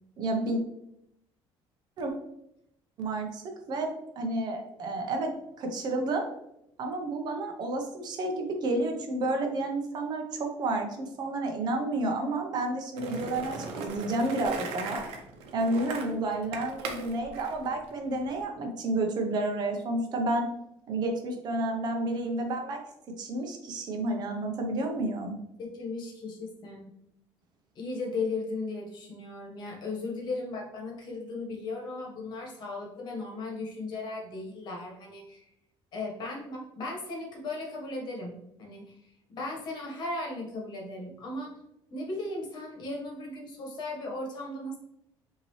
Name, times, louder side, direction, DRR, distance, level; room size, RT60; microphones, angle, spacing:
voice 1, 0.2-0.6 2.0-2.1 3.0-3.9 4.2-5.3 5.6-6.3 6.8-15.0 15.5-20.5 20.9-22.8 23.2-25.3, right 2 dB, 45° right, 3 dB, 0.8 m, -30 dB
Skateboard, 13.0-18.4, right 4 dB, 90° right, 0.8 m, -39 dB
voice 2, 25.6-26.9 27.7-35.5 35.9-39.0 39.3-41.6 41.9-44.8, left 2 dB, 45° left, -1 dB, 1.3 m, -36 dB
5.7 x 2.8 x 3.1 m, 0.81 s
cardioid pair, 175°, 10 cm